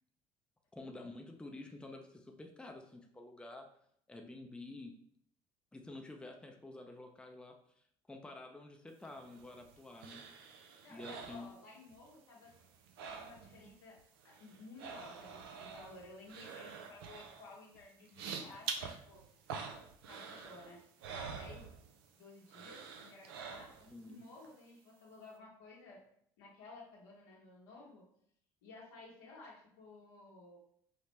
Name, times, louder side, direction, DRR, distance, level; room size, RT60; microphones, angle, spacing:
voice 1, 0.8-3.7 4.1-5.0 5.7-7.6 8.1-10.2 10.9-11.5 23.9-24.2, left 2 dB, 10° left, 3 dB, 0.6 m, -49 dB
sound 1, 9.0-12.1 12.4-13.7 14.0-22.1 22.5-24.0 24.4-24.5, right 6 dB, 90° right, 0.5 m, -47 dB
voice 2, 10.8-12.5 13.1-14.0 14.2-19.2 20.0-20.8 21.1-21.7 22.2-26.0 26.4-28.0 28.6-30.6, left 3 dB, 85° left, -3 dB, 1.2 m, -55 dB
5.1 x 2.1 x 3.1 m, 0.66 s
supercardioid pair, 80°, 12 cm